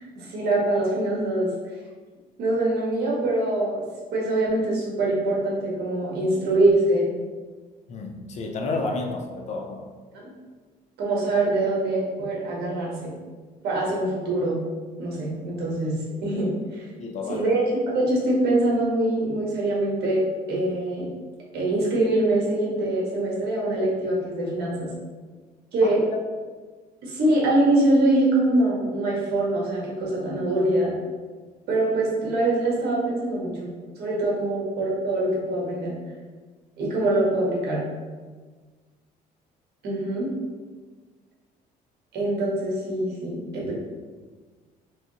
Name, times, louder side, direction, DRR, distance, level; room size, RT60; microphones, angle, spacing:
voice 1, 0.0-1.5 2.4-3.8 4.1-7.1 10.1-10.2 11.0-13.1 13.6-14.6 15.0-16.8 17.3-20.2 20.5-21.1 21.5-24.9 25.7-26.0 27.0-30.9 31.7-33.7 34.0-35.9 36.8-37.8 39.8-40.3 42.1-43.7, right 2 dB, 70° right, -4 dB, 1.3 m, -24 dB
voice 2, 7.9-9.8 17.0-17.5 25.8-25.9, left 3 dB, 45° left, 3 dB, 0.5 m, -31 dB
3.4 x 3.1 x 2.8 m, 1.4 s
cardioid pair, 110°, 17 cm